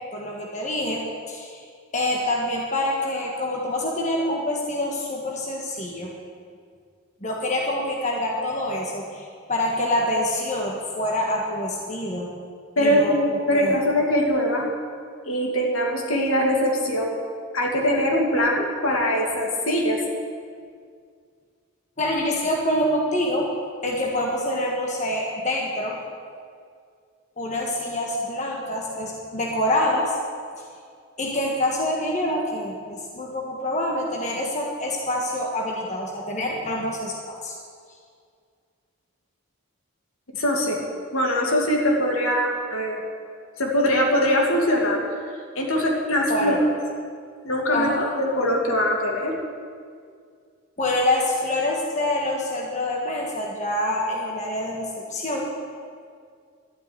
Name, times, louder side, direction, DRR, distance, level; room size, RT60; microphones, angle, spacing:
voice 1, 0.0-1.6 1.9-6.1 7.2-12.3 12.8-13.7 22.0-23.5 23.8-26.0 27.4-30.2 31.2-37.5 46.3-46.6 47.7-48.1 50.8-55.5, left 1 dB, 35° left, -1 dB, 1.6 m, -26 dB
voice 2, 12.8-14.7 15.2-17.1 17.5-20.0 40.3-40.8 41.1-43.0 43.6-45.0 45.5-46.6 47.4-49.3, equal, 75° left, 0 dB, 2.6 m, -22 dB
12.0 x 8.8 x 9.8 m, 2.2 s
head